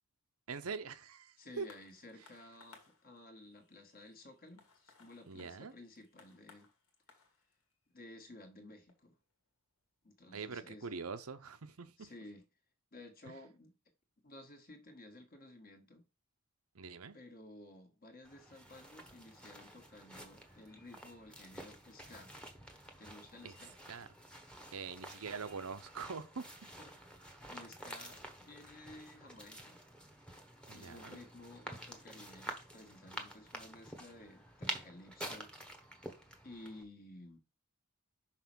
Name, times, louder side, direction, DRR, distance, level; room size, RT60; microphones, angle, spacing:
voice 1, 0.5-1.7 5.3-5.7 10.3-12.1 13.3-13.4 16.7-17.1 23.4-23.6 23.9-24.1 24.7-26.4 30.7-31.2, right 5 dB, 80° right, 0.8 m, -44 dB
voice 2, 1.4-6.7 7.9-9.2 10.0-11.0 12.0-12.4 12.9-13.7 14.2-16.1 17.1-22.3 23.0-23.7 26.8-26.9 27.5-29.8 30.6-35.5 36.4-37.4, left 2 dB, 40° left, 1.6 m, -54 dB
sound 1, 1.6-10.4 11.2-11.3, left 4 dB, 70° left, 1.9 m, -65 dB
sound 2, 18.2-36.8, right 1 dB, 5° left, 1.1 m, -49 dB
5.9 x 4.2 x 6.2 m
head